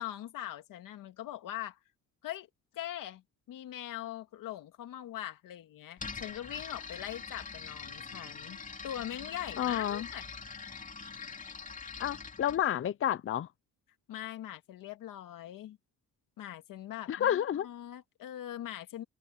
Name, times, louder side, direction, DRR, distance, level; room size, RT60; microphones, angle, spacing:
voice 1, 0.0-1.8 2.2-2.5 2.7-3.2 3.5-10.2 14.1-15.8 16.4-19.0, left 12 dB, 90° left, 2.1 m, -42 dB
sound 1, 6.0-12.6, left 5 dB, 25° left, 2.7 m, -44 dB
voice 2, 9.6-10.1 12.0-13.5 17.1-17.7, left 10 dB, 40° left, 0.6 m, -30 dB
cardioid pair, 125°, 32 cm